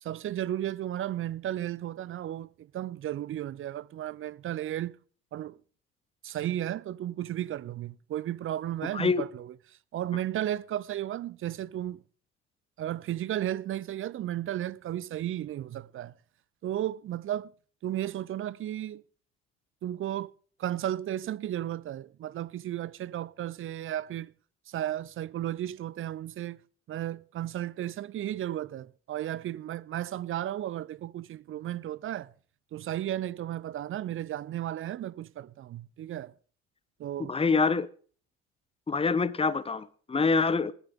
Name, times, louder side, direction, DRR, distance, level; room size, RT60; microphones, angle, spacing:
voice 1, 0.0-5.0 5.3-5.6 6.2-9.5 9.9-12.0 12.8-16.1 16.6-17.5 17.8-19.0 19.8-20.3 20.6-24.3 24.7-26.6 26.9-32.3 32.7-36.3 37.0-37.3, right 12 dB, 35° right, 0.6 m, -34 dB
voice 2, 8.9-9.2 37.3-37.9 38.9-40.7, left 4 dB, 15° left, 1.0 m, -25 dB
19.5 x 11.0 x 3.7 m
hypercardioid pair, 60°, 35 cm